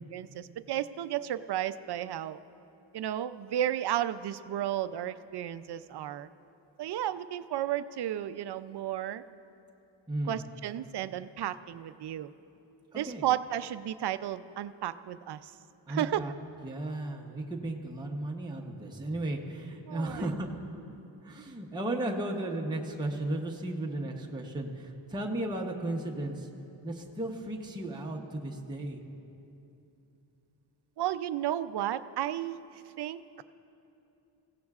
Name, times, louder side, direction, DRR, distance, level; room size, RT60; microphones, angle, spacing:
voice 1, 0.1-2.4 2.9-6.3 6.8-9.2 10.3-12.3 12.9-15.5 15.9-16.2 19.9-20.2 31.0-32.6 33.0-33.4, right 12 dB, 60° right, 13 dB, 0.5 m, -33 dB
voice 2, 10.1-10.4 12.9-13.2 15.9-16.3 16.6-20.5 21.2-26.5 26.8-29.0, right 1 dB, 10° right, 0 dB, 0.8 m, -35 dB
25.5 x 16.5 x 2.4 m, 2.8 s
wide cardioid pair, 170°, 46 cm